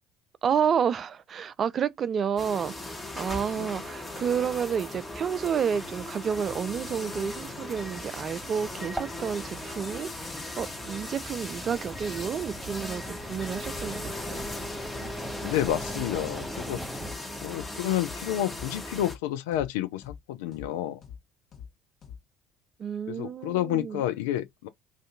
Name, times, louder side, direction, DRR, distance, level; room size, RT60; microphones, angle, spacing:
voice 1, 0.4-14.4 22.8-24.0, right 7 dB, 40° right, 0.4 m, -30 dB
sound 1, 2.4-19.2, left 2 dB, 20° left, 1.2 m, -38 dB
sound 2, 5.8-17.1, right 1 dB, 10° right, 0.7 m, -42 dB
voice 2, 15.4-16.8 17.4-21.0 23.1-24.7, left 12 dB, 75° left, 0.4 m, -30 dB
sound 3, 17.0-17.2 17.5-17.7 18.0-18.2 18.5-18.7 19.0-19.2 19.5-19.7 20.0-20.2 20.5-20.7 21.0-21.2 21.5-21.7 22.0-22.2, left 8 dB, 50° left, 1.2 m, -44 dB
2.6 x 2.5 x 3.8 m
hypercardioid pair, 60°, 0 cm